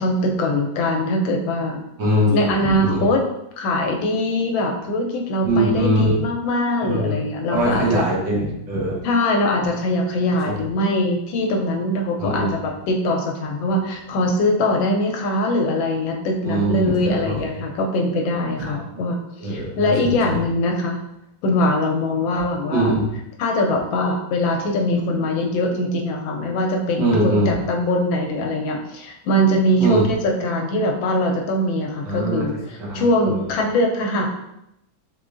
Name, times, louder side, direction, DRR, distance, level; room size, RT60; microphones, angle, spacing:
voice 1, 0.0-1.8 2.3-3.2 3.6-8.0 9.0-21.0 21.4-22.9 23.4-34.3, left 1 dB, 80° left, 1 dB, 1.3 m, -22 dB
voice 2, 2.0-3.1 5.4-6.1 6.8-7.2 7.5-9.0 10.5-10.6 12.2-12.5 16.4-17.3 18.6-18.8 19.4-20.4 22.3-22.4 22.7-23.1 27.0-27.5 29.8-30.0 32.0-32.5 32.8-33.5, right 1 dB, 65° right, -5 dB, 1.8 m, -22 dB
3.7 x 3.7 x 2.5 m, 0.83 s
omnidirectional pair, 2.1 m